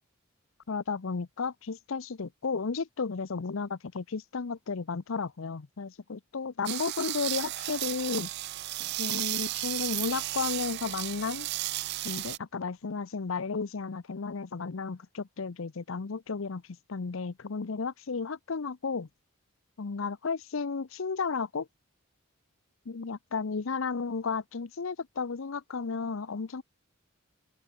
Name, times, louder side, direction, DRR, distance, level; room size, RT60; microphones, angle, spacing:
voice 1, 0.7-8.3 9.0-11.5 12.0-16.6 16.9-19.1 19.8-21.7 22.9-26.6, left 4 dB, 70° left, 0.7 m, -33 dB
sound 1, 6.6-12.4, right 17 dB, 50° right, 0.3 m, -34 dB
open air
head